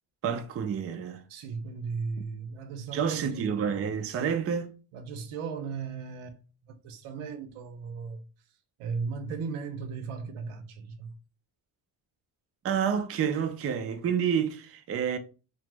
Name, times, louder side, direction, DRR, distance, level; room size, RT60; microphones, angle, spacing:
voice 1, 0.2-1.2 2.2-2.3 2.9-4.7 12.6-15.2, right 7 dB, 30° right, 0.4 m, -29 dB
voice 2, 1.3-3.5 4.9-6.4 6.8-8.2 8.8-11.1, right 5 dB, 85° right, 0.7 m, -36 dB
2.8 x 2.0 x 3.3 m
cardioid pair, 85°, 48 cm